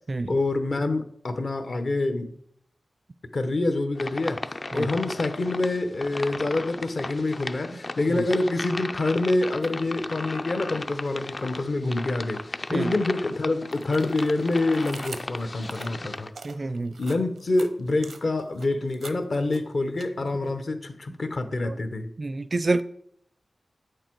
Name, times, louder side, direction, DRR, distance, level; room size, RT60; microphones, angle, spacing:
voice 1, 0.3-2.3 3.3-4.4 4.7-12.4 12.7-16.3 17.0-22.1, left 2 dB, 60° left, 0.9 m, -26 dB
sound 1, 4.0-16.3, left 2 dB, 40° left, 0.4 m, -36 dB
sound 2, 9.5-9.7 10.1-11.6 12.1-20.5, right 4 dB, 90° right, 0.7 m, -46 dB
voice 2, 16.4-17.0 21.6-21.8 22.2-22.8, right 2 dB, 45° right, 0.4 m, -27 dB
8.6 x 6.5 x 4.6 m
wide cardioid pair, 80°, 0 cm